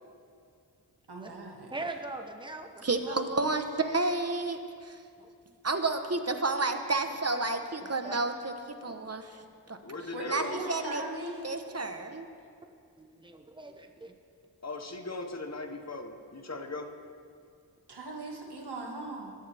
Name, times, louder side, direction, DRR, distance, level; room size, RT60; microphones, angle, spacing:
voice 1, 1.1-1.7 10.1-11.4 17.9-19.3, right 2 dB, 75° right, -1 dB, 2.2 m, -39 dB
voice 2, 1.7-3.2 5.2-5.3 7.3-7.4 8.0-8.1 8.8-8.9 13.0-14.1, right 2 dB, 10° right, 4 dB, 1.1 m, -41 dB
voice 3, 2.8-5.0 5.6-8.5 8.8-9.4 9.7-11.0 11.4-12.3, right 3 dB, 40° right, 7 dB, 1.1 m, -31 dB
voice 4, 9.8-10.6 14.6-16.9, left 2 dB, 40° left, 5 dB, 1.2 m, -38 dB
21.0 x 12.5 x 3.5 m, 2.3 s
wide cardioid pair, 60°, 39 cm